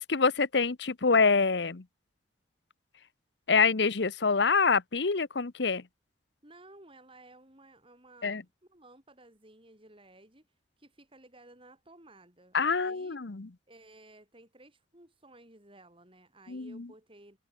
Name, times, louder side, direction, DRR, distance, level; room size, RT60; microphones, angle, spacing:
voice 1, 0.0-1.8 3.5-5.8 8.2-8.4 12.5-13.5 16.5-16.9, left 4 dB, 65° left, 0.9 m, -26 dB
voice 2, 6.4-10.5 10.8-13.3 13.7-17.4, right 2 dB, 30° right, 6.7 m, -56 dB
head